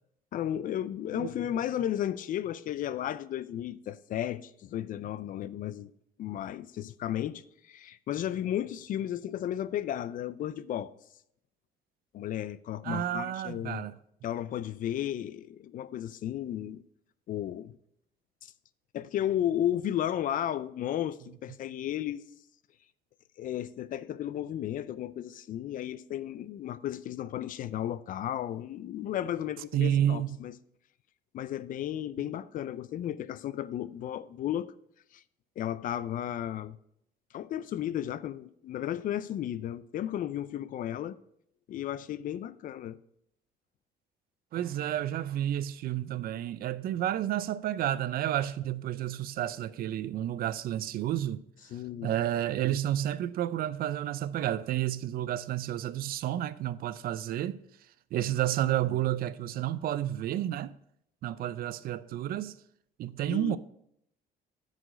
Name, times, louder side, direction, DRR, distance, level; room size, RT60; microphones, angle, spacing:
voice 1, 0.3-5.9 6.2-10.9 12.1-13.8 14.2-16.8 17.3-17.8 18.4-18.5 18.9-22.2 23.4-30.5 31.3-34.7 35.1-35.2 35.6-36.8 37.3-41.2 41.7-43.0 51.7-52.1 58.2-58.3 63.3-63.6, left 11 dB, 55° left, 0.4 m, -34 dB
voice 2, 12.8-13.9 29.7-30.4 44.5-51.4 52.0-57.6 58.1-60.7 61.2-62.6 63.0-63.6, right 12 dB, 60° right, 0.5 m, -30 dB
9.9 x 5.0 x 5.0 m
cardioid pair, 110°, 17 cm